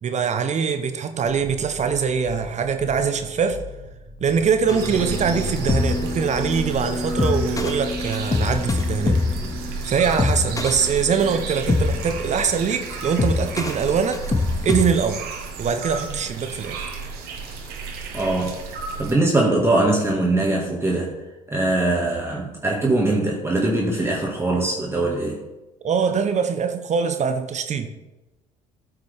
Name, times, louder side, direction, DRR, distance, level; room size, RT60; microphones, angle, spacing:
voice 1, 0.0-3.6 4.2-9.2 9.8-14.2 14.6-15.2 15.6-16.8 25.8-27.9, right 6 dB, 40° right, 8 dB, 0.9 m, -23 dB
sound 1, 1.2-10.8, left 2 dB, 70° left, 1.8 m, -40 dB
sound 2, 4.7-14.9, left 3 dB, 20° left, 0.9 m, -25 dB
sound 3, 4.7-19.1, right 4 dB, 60° right, 1.7 m, -33 dB
voice 2, 18.1-18.7 19.0-21.1 21.5-25.4, right 2 dB, 15° right, -2 dB, 2.0 m, -21 dB
13.5 x 5.9 x 3.6 m, 1.0 s
hypercardioid pair, 55°, 18 cm